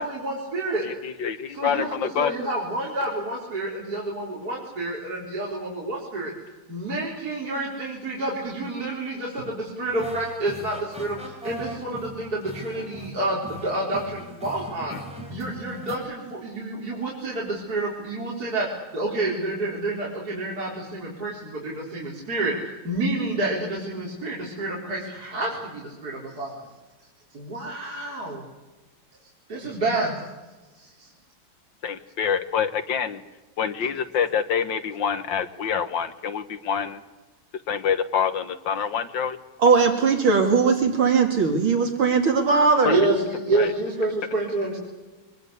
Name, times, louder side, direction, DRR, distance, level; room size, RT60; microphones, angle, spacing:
voice 1, 0.0-0.8 1.5-6.3 6.7-15.0 15.3-22.5 22.8-26.5 27.3-28.4 29.5-30.1 30.8-31.1 42.8-44.8, right 2 dB, 45° right, -4 dB, 4.8 m, -29 dB
voice 2, 0.8-2.5 14.9-15.0 31.8-33.2 33.6-37.0 37.7-39.4 42.9-43.0 43.5-43.7, left 7 dB, 65° left, 11 dB, 1.9 m, -26 dB
sound 1, 9.9-16.0, right 1 dB, 5° right, 4.6 m, -39 dB
voice 3, 39.6-43.0, right 5 dB, 75° right, 3 dB, 3.4 m, -19 dB
24.5 x 20.5 x 8.3 m, 1.2 s
omnidirectional pair, 2.3 m